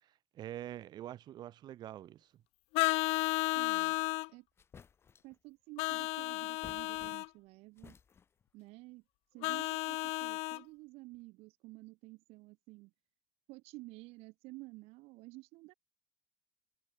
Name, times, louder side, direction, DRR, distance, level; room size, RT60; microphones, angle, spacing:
voice 1, 0.0-2.3, right 12 dB, 40° right, 2.2 m, -45 dB
Vehicle horn car horn honking, 2.7-4.3 5.8-7.3 9.4-10.6, left 25 dB, 65° left, 0.4 m, -33 dB
voice 2, 3.5-4.0 4.3-4.5 5.2-8.0 8.5-9.0 9.3-12.9 13.5-15.7, right 22 dB, 65° right, 5.6 m, -52 dB
sound 1, 4.1-4.2 4.6-5.4 6.4-7.5 7.8-8.5, left 6 dB, 20° left, 7.9 m, -57 dB
cardioid pair, 175°, 11 cm